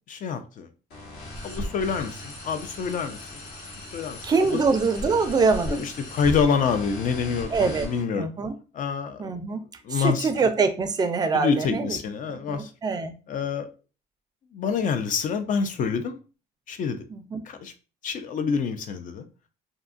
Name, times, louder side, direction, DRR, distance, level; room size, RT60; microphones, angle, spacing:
voice 1, 0.1-0.7 1.4-3.4 3.9-4.2 4.5-4.6 5.7-8.3 8.7-9.3 9.8-10.3 11.3-12.7 13.3-13.7 14.5-16.2 16.7-17.0 17.5-17.7 18.0-19.3, left 6 dB, 50° left, 0.5 m, -27 dB
sound 1, 0.9-8.0, left 1 dB, 70° left, 1.3 m, -37 dB
voice 2, 4.2-5.8 7.5-7.9 8.1-8.5 9.2-9.6 9.9-12.0 12.5-13.1 17.1-17.4, right 4 dB, 25° right, 0.4 m, -24 dB
2.7 x 2.3 x 2.4 m
cardioid pair, 110°, 17 cm